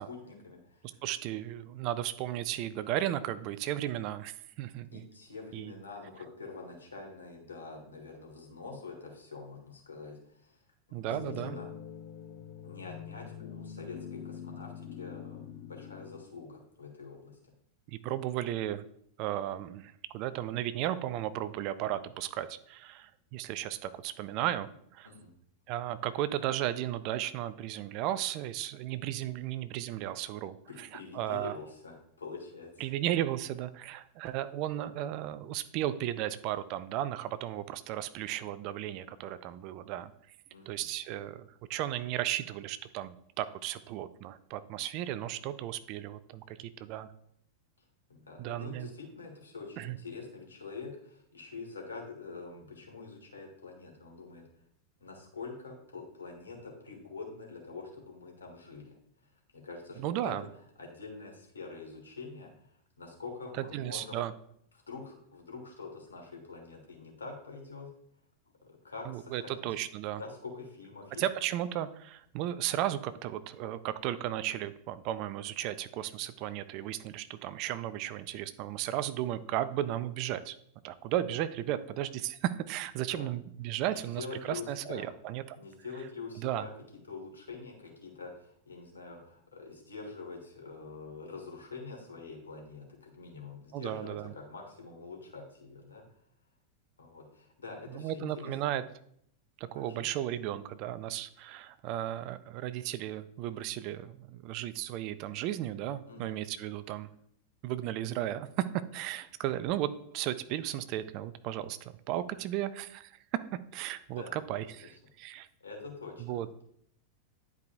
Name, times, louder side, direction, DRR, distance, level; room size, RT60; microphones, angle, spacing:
voice 1, 0.0-1.0 4.9-10.6 10.9-11.7 12.6-17.4 18.4-18.5 25.0-25.3 30.7-32.9 40.5-40.9 48.1-54.4 55.0-59.0 59.5-60.4 60.8-64.2 64.9-67.9 68.8-69.7 70.2-71.2 83.1-83.3 83.8-85.1 85.6-86.7 87.0-96.0 97.0-98.8 99.7-100.1 106.1-106.4 114.1-114.6 115.6-116.2, left 4 dB, 75° left, 1 dB, 1.9 m, -45 dB
voice 2, 0.8-5.0 5.5-5.7 10.9-11.6 17.9-18.8 19.2-25.1 25.7-31.6 32.8-40.1 40.7-47.1 48.4-48.9 49.8-50.0 60.0-60.4 63.7-64.3 69.1-70.2 71.2-80.6 80.8-85.6 86.4-86.7 93.7-94.3 97.9-98.8 99.6-107.1 107.6-115.5 116.2-116.5, right 12 dB, 40° right, 14 dB, 0.4 m, -35 dB
sound 1, 11.1-16.2, left 9 dB, 40° left, 0.5 m, -44 dB
10.5 x 4.7 x 2.6 m, 0.68 s
figure-of-eight pair, 90°, 0 cm